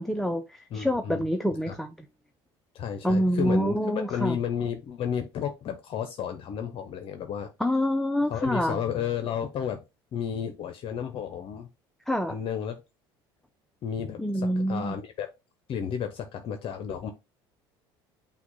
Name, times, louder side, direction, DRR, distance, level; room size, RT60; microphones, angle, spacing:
voice 1, 0.0-1.9 3.0-4.4 7.6-8.8 12.1-12.4 14.2-15.0, equal, ahead, 0.4 m, -26 dB
voice 2, 0.7-1.3 1.7-1.8 2.7-7.5 8.3-9.8 10.1-11.7 12.3-12.8 13.8-15.3 15.7-17.1, left 8 dB, 50° left, 0.7 m, -32 dB
5.8 x 2.2 x 3.9 m
supercardioid pair, 90°, 12 cm